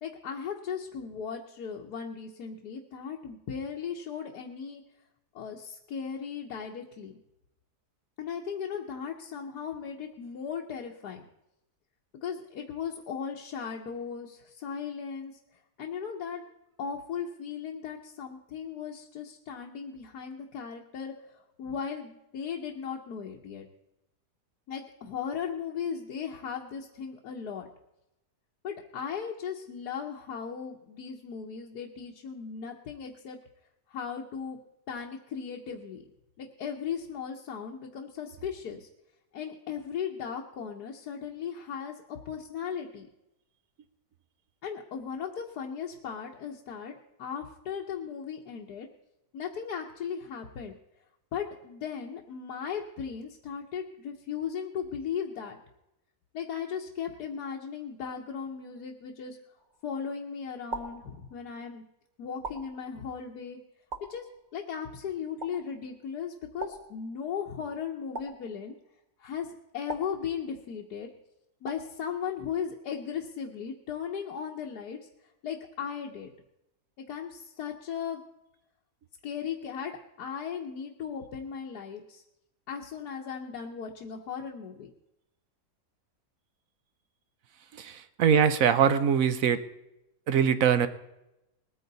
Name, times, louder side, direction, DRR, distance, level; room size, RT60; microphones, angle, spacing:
voice 1, 0.0-4.8 5.3-7.2 8.2-11.2 12.2-15.4 15.8-16.4 16.8-23.7 24.7-27.7 28.6-33.4 33.9-34.6 34.9-36.0 36.4-38.9 39.3-43.1 44.6-48.9 49.3-50.7 51.3-55.6 56.3-59.4 59.8-61.8 62.2-63.6 64.1-68.8 69.2-69.5 69.7-71.1 71.6-75.0 75.4-76.3 77.0-78.2 79.2-82.2 82.7-84.9, left 7 dB, 70° left, 0 dB, 1.5 m, -37 dB
sound 1, 59.6-60.1 60.7-61.7 62.4-63.3 63.9-64.8 65.4-66.1 66.6-67.5 68.1-69.0 69.9-70.9 71.7-72.3, right 2 dB, 30° right, 1.1 m, -43 dB
voice 2, 87.8-89.6 90.3-90.9, right 7 dB, 60° right, 12 dB, 1.1 m, -23 dB
20.5 x 9.4 x 4.0 m, 0.89 s
omnidirectional pair, 1.8 m